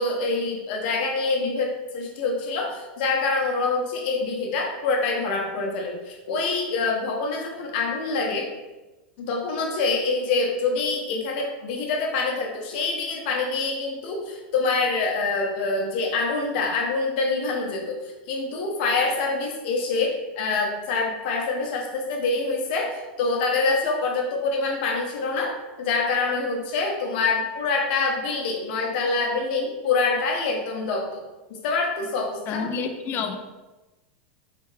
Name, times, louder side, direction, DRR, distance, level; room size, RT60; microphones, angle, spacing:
voice 1, 0.0-8.5 9.2-31.2 31.5-32.6, left 3 dB, 60° left, 1 dB, 0.9 m, -26 dB
voice 2, 32.5-33.4, left 5 dB, 35° left, 6 dB, 0.5 m, -28 dB
4.4 x 3.4 x 3.3 m, 1.1 s
supercardioid pair, 135°, 6 cm